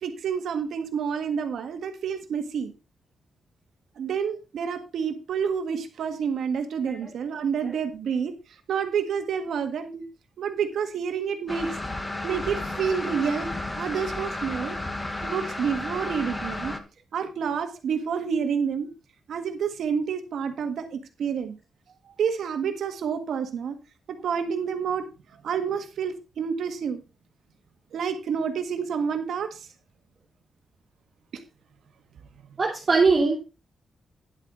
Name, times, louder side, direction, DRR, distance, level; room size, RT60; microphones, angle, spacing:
voice 1, 0.0-2.7 4.0-8.3 8.7-10.0 10.4-11.8 12.2-13.5 13.8-14.8 15.2-16.8 17.1-18.9 19.3-21.6 22.2-23.8 24.1-25.1 25.4-27.0 27.9-29.7 31.3-31.4, right 7 dB, 80° right, 7 dB, 1.6 m, -28 dB
sound 1, 11.5-16.8, left 2 dB, 15° left, 1.3 m, -32 dB
voice 2, 32.6-33.4, right 4 dB, 35° right, -4 dB, 3.1 m, -20 dB
10.5 x 8.0 x 3.9 m, 0.30 s
wide cardioid pair, 135°, 0 cm